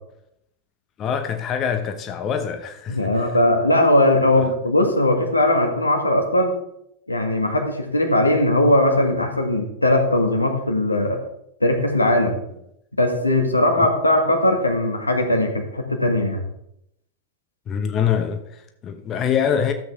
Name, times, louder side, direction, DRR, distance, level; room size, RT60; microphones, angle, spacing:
voice 1, 1.0-3.4 4.4-4.5 13.8-13.9 17.7-19.7, left 8 dB, 30° left, 0.9 m, -25 dB
voice 2, 2.9-6.5 7.1-11.2 11.6-12.4 13.0-16.4, left 1 dB, 85° left, 1.8 m, -19 dB
13.0 x 8.0 x 3.6 m
figure-of-eight pair, 90°, 0 cm